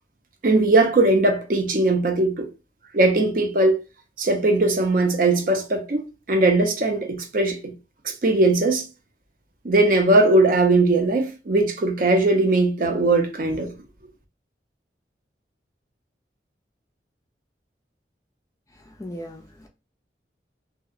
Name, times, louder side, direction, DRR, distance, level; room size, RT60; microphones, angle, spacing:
voice 1, 0.4-2.5 2.9-3.8 4.2-6.0 6.3-7.7 8.0-8.8 9.6-13.7, right 2 dB, 50° right, 0.5 m, -19 dB
voice 2, 18.8-19.7, equal, 20° left, 0.3 m, -38 dB
2.6 x 2.1 x 2.4 m
head